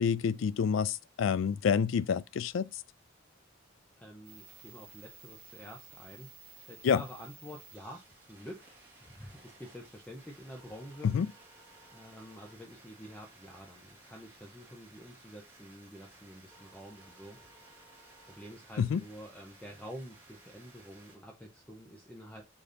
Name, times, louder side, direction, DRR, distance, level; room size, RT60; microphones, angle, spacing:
voice 1, 0.0-2.8 6.8-7.0 11.0-11.3 18.8-19.0, left 7 dB, 75° left, 0.3 m, -28 dB
voice 2, 4.0-6.3 6.7-8.7 9.0-11.1 11.9-17.5 18.2-22.4, equal, 5° left, 0.7 m, -48 dB
sound 1, 4.2-21.2, right 3 dB, 10° right, 1.4 m, -56 dB
5.0 x 4.0 x 2.6 m
head